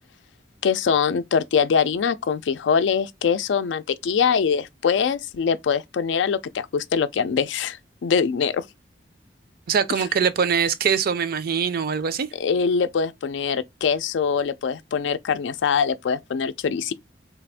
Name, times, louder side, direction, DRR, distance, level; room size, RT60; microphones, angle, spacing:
voice 1, 0.6-7.8 8.0-8.6 12.3-16.9, left 6 dB, 85° left, 0.4 m, -23 dB
voice 2, 9.7-12.3, right 6 dB, 55° right, 0.4 m, -22 dB
3.4 x 2.4 x 3.3 m
head